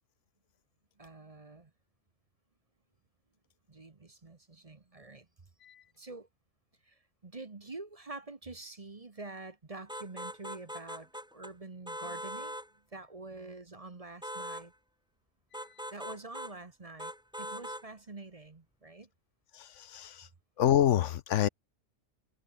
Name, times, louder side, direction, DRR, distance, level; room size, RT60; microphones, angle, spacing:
voice 1, 1.0-1.7 3.7-5.3 6.0-6.3 6.9-12.6 12.9-14.7 15.9-17.1 17.4-19.1, right 3 dB, 30° right, 1.2 m, -46 dB
sound 1, 9.9-11.5 11.9-12.7 14.2-14.7 15.5-16.6 17.0-17.9, equal, 5° right, 3.2 m, -41 dB
voice 2, 19.5-20.3 20.6-21.5, left 11 dB, 70° left, 1.0 m, -27 dB
omnidirectional pair, 1.4 m